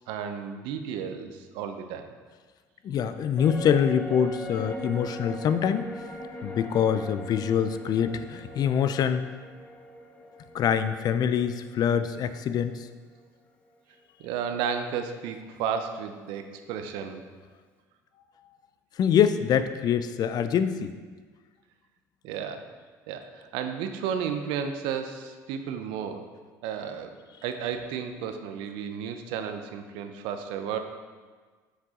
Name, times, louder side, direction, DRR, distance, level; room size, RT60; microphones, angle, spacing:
voice 1, 0.1-2.1 6.2-6.3 14.2-17.3 22.2-22.7 23.1-26.3 26.6-27.2 27.4-30.8, right 7 dB, 75° right, 7 dB, 0.6 m, -33 dB
voice 2, 2.8-5.9 6.4-9.2 10.5-12.9 19.0-20.9, left 8 dB, 50° left, 11 dB, 0.4 m, -25 dB
sound 1, 3.4-12.9 13.2-13.3, equal, 15° left, 0.8 m, -41 dB
6.6 x 4.7 x 3.7 m, 1.5 s
supercardioid pair, 75°, 8 cm